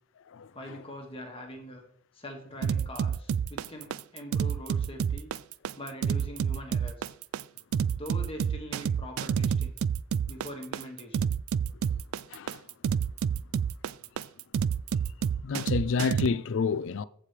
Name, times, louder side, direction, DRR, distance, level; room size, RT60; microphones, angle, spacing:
voice 1, 0.5-1.8 2.1-5.3 5.8-7.1 7.9-9.8 10.3-11.3, equal, 25° left, 1.9 m, -43 dB
sound 1, 2.6-16.3, right 7 dB, 75° right, 0.3 m, -28 dB
voice 2, 12.3-12.6 15.4-17.0, left 5 dB, 60° left, 0.4 m, -29 dB
15.0 x 5.1 x 3.3 m
head